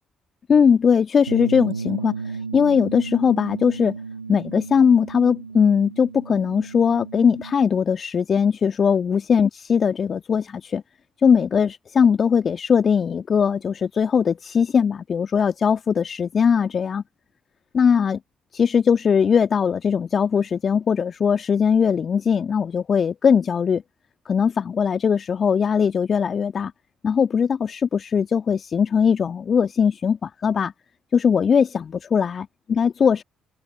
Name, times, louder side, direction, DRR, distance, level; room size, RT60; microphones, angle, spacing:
voice 1, 0.5-4.0 4.3-10.8 11.2-17.0 17.7-18.2 18.5-23.8 24.3-26.7 27.0-30.7 31.1-33.2, left 6 dB, 45° left, 1.8 m, -20 dB
Bass guitar, 1.3-7.5, right 4 dB, 90° right, 1.0 m, -34 dB
figure-of-eight pair, 45°, 0 cm